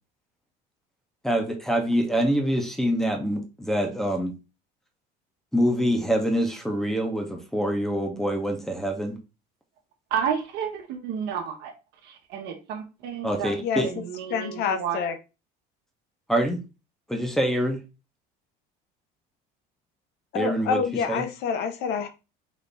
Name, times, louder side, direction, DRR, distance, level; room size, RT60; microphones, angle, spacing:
voice 1, 1.2-4.3 5.5-9.2 13.2-13.9 16.3-16.6 17.1-17.8 20.3-20.8 21.1-21.2, equal, ahead, 3 dB, 0.8 m, -25 dB
voice 2, 10.1-11.7 12.0-13.5 13.9-15.0, right 8 dB, 65° right, 4 dB, 1.1 m, -31 dB
voice 3, 14.3-15.2 20.3-22.1, left 6 dB, 60° left, 8 dB, 0.7 m, -27 dB
4.1 x 2.7 x 3.4 m, 0.29 s
cardioid pair, 140°, 18 cm